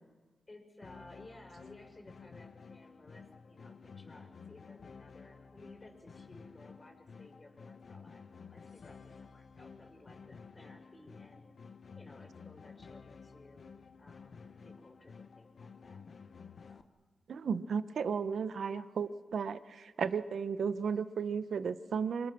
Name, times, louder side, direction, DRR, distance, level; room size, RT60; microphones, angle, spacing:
voice 1, 0.5-8.2 8.5-11.5 12.0-13.7 14.0-16.0 16.6-16.9, left 1 dB, 30° left, 2 dB, 5.5 m, -57 dB
sound 1, 0.8-16.8, left 5 dB, 65° left, 1.0 m, -53 dB
voice 2, 17.3-22.3, right 6 dB, 80° right, 12 dB, 0.9 m, -34 dB
27.5 x 26.0 x 6.2 m, 1.4 s
cardioid pair, 80°, 0 cm